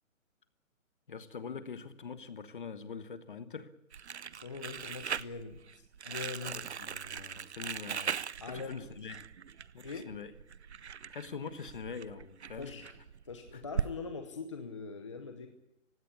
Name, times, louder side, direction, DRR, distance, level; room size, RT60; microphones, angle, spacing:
voice 1, 1.1-3.7 6.5-8.2 8.4-9.2 9.7-10.3 11.1-12.8 13.5-13.6, left 5 dB, 40° left, 12 dB, 1.4 m, -44 dB
Crumpling crinkling, 3.9-13.9, right 7 dB, 55° right, 0.7 m, -40 dB
voice 2, 4.3-6.7 8.4-8.9 9.8-10.1 12.5-13.0 13.2-15.5, left 4 dB, 20° left, 6 dB, 0.9 m, -42 dB
19.0 x 16.5 x 9.8 m, 0.89 s
hypercardioid pair, 175°, 41 cm